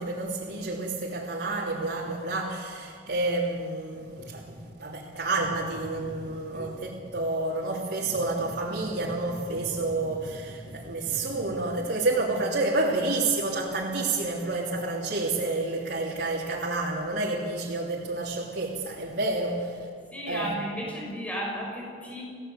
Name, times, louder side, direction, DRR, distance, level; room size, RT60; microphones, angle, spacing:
voice 1, 0.0-19.9 20.3-20.6, right 2 dB, 85° right, -6 dB, 3.2 m, -29 dB
voice 2, 6.5-7.0 20.1-22.2, equal, 10° left, -2 dB, 5.9 m, -34 dB
30.0 x 17.0 x 8.2 m, 2.2 s
head